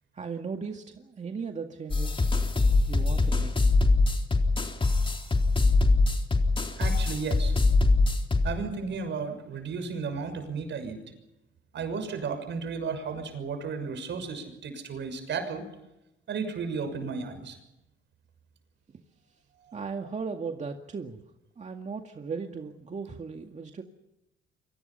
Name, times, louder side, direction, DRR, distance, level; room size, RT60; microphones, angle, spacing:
voice 1, 0.1-2.3 2.8-3.6 19.7-21.2 21.6-23.8, right 5 dB, 35° right, 3 dB, 2.1 m, -37 dB
sound 1, 1.9-8.5, left 3 dB, 25° left, 3.8 m, -23 dB
voice 2, 6.8-7.6 8.4-11.0 11.7-15.6 16.3-17.6 19.6-19.7, right 5 dB, 65° right, 8 dB, 6.4 m, -34 dB
29.0 x 24.5 x 5.7 m, 0.92 s
cardioid pair, 90°, 20 cm